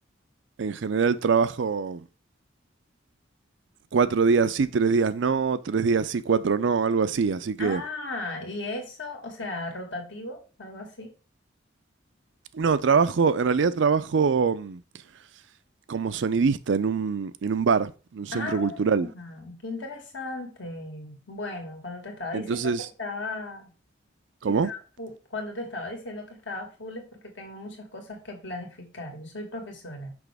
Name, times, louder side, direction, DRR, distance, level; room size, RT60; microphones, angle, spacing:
voice 1, 0.6-2.0 3.9-7.8 12.5-14.8 15.9-19.1 22.3-22.9 24.4-24.7, right 5 dB, 70° right, 0.4 m, -24 dB
voice 2, 7.6-11.1 18.3-22.6 23.0-23.7 24.5-30.2, left 2 dB, 70° left, 1.9 m, -36 dB
6.0 x 5.5 x 3.4 m
head